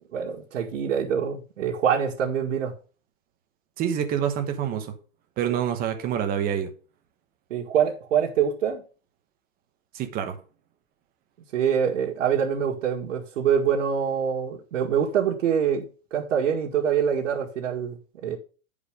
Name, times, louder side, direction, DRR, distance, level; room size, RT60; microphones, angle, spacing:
voice 1, 0.1-2.7 7.5-8.8 11.5-18.4, right 8 dB, 65° right, 2.0 m, -25 dB
voice 2, 3.8-4.9 5.4-6.7 9.9-10.4, right 9 dB, 20° right, 1.1 m, -27 dB
10.5 x 5.1 x 5.0 m
hypercardioid pair, 150°, 40 cm